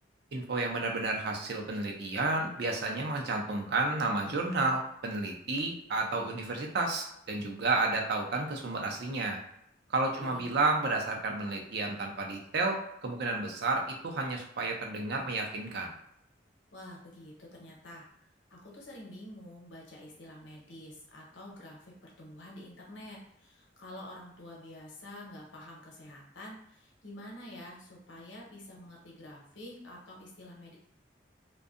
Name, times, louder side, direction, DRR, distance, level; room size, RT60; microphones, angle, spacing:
voice 1, 0.3-9.4 9.9-15.9, right 3 dB, 60° right, 2 dB, 0.5 m, -31 dB
voice 2, 10.2-10.6 16.7-18.0 18.5-30.8, left 1 dB, 75° left, -2 dB, 0.8 m, -48 dB
2.6 x 2.2 x 2.4 m, 0.75 s
head